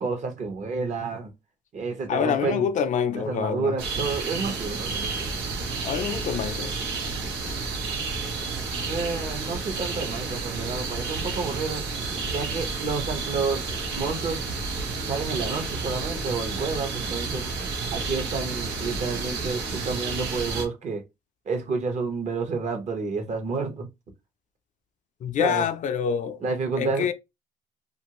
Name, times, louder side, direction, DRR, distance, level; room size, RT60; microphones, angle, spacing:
voice 1, 0.0-1.3 1.7-2.7 3.1-5.3 8.9-11.8 12.3-13.7 14.0-14.4 15.1-17.4 17.9-21.0 21.5-23.9 25.4-25.6 26.4-27.1, right 4 dB, 45° right, 0.9 m, -30 dB
voice 2, 2.1-3.7 5.8-6.7 25.2-26.4 26.8-27.1, left 8 dB, 50° left, 0.4 m, -26 dB
sound 1, 3.8-20.7, right 4 dB, 90° right, 1.1 m, -31 dB
2.8 x 2.5 x 2.9 m
cardioid pair, 110°, 17 cm